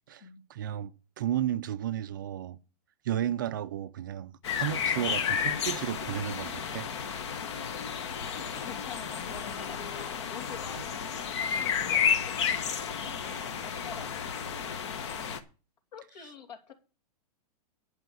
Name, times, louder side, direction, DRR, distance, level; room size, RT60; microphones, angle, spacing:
voice 1, 0.1-2.6 3.0-6.9 10.8-10.9, right 11 dB, 30° right, 0.4 m, -33 dB
sound 1, 4.4-15.4, left 7 dB, 45° left, 1.1 m, -32 dB
voice 2, 8.3-14.8 15.9-16.7, left 6 dB, 80° left, 2.9 m, -48 dB
10.5 x 5.6 x 7.5 m
hypercardioid pair, 175°, 21 cm